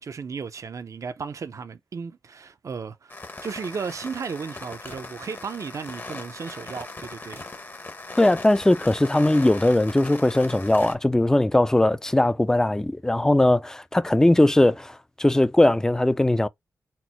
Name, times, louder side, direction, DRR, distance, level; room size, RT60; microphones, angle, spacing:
voice 1, 0.0-7.4, right 5 dB, 60° right, 0.5 m, -35 dB
sound 1, 3.1-11.0, left 2 dB, 35° left, 0.8 m, -39 dB
voice 2, 8.2-16.5, left 1 dB, 10° left, 0.3 m, -20 dB
4.4 x 2.0 x 4.2 m
cardioid pair, 70°, 6 cm